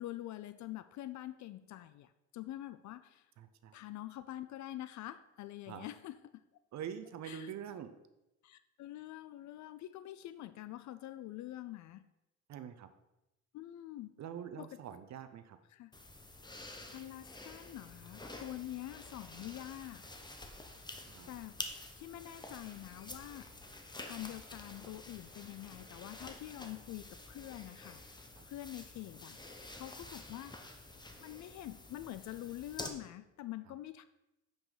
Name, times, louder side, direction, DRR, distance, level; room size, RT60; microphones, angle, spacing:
voice 1, 0.0-3.3 3.7-6.4 7.2-7.5 8.4-12.1 13.5-14.2 14.6-14.8 15.7-15.9 16.9-20.0 21.3-21.6 22.0-23.5 24.0-28.0 28.5-30.6 31.2-34.0, left 14 dB, 70° left, 13 dB, 0.4 m, -46 dB
voice 2, 3.4-3.7 5.7-5.9 6.7-7.9 12.5-12.9 14.2-15.6 21.1-21.3 28.4-28.5, right 8 dB, 65° right, 10 dB, 0.7 m, -45 dB
sound 1, 15.9-32.9, left 2 dB, 15° left, 1.0 m, -49 dB
8.9 x 5.2 x 4.0 m, 0.93 s
cardioid pair, 90°, 30 cm